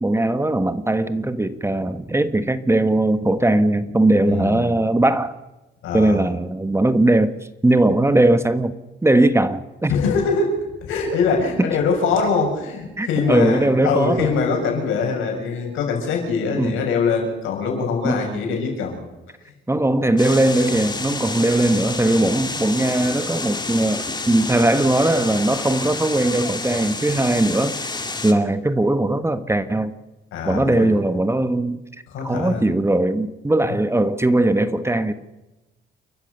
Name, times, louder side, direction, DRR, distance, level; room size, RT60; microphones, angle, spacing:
voice 1, 0.0-5.3 5.9-7.3 7.6-8.8 9.0-9.9 11.6-11.8 13.0-14.4 16.6-16.8 18.0-18.3 19.7-27.8 28.2-29.9 30.4-31.8 32.2-35.1, right 1 dB, 15° right, 12 dB, 1.4 m, -19 dB
voice 2, 4.3-4.6 5.8-6.2 9.9-10.5 10.8-19.0 30.3-30.9 32.1-32.6, left 5 dB, 85° left, 2 dB, 7.2 m, -23 dB
sound 1, 20.2-28.3, left 3 dB, 20° left, 2.5 m, -29 dB
29.5 x 14.0 x 6.8 m, 1.1 s
cardioid pair, 90°, 20 cm